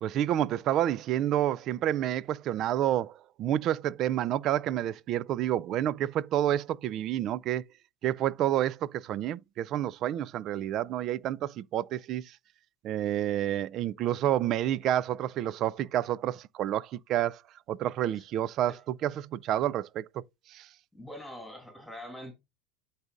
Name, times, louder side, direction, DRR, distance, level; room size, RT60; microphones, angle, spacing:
voice 1, 0.0-7.6 8.0-12.4 12.8-17.4 17.7-20.2 20.5-20.7, right 12 dB, 50° right, 0.4 m, -29 dB
voice 2, 20.9-22.3, left 1 dB, ahead, 2.8 m, -44 dB
11.5 x 4.0 x 2.5 m
hypercardioid pair, 95°, 0 cm